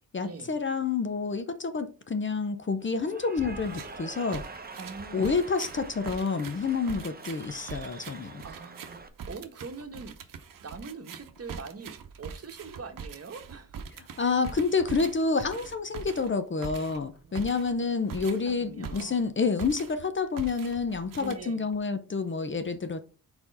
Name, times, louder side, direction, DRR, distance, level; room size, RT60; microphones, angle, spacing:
voice 1, 0.1-4.4 5.1-8.4 14.2-23.0, left 4 dB, 35° left, 0.7 m, -29 dB
Cheering / Applause, 2.8-9.1, right 3 dB, 25° right, 0.8 m, -45 dB
sound 1, 3.6-4.0 4.3-19.3 19.6-20.1 20.4-21.8, right 6 dB, 65° right, 0.9 m, -43 dB
voice 2, 4.8-5.4 8.4-9.0 9.3-13.8 17.1-17.8 18.4-19.2 21.2-21.7, right 4 dB, 45° right, 1.1 m, -43 dB
4.4 x 4.3 x 5.2 m
cardioid pair, 75°, 35 cm